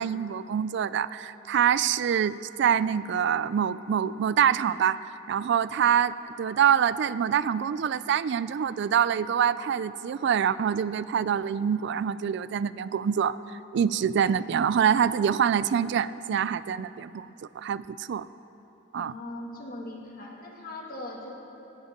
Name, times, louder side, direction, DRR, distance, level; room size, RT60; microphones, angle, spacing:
voice 1, 0.0-18.3 18.9-19.1, right 8 dB, 65° right, 17 dB, 0.3 m, -25 dB
voice 2, 19.0-21.3, left 1 dB, 50° left, -1 dB, 2.1 m, -40 dB
17.5 x 16.0 x 3.7 m, 3.0 s
head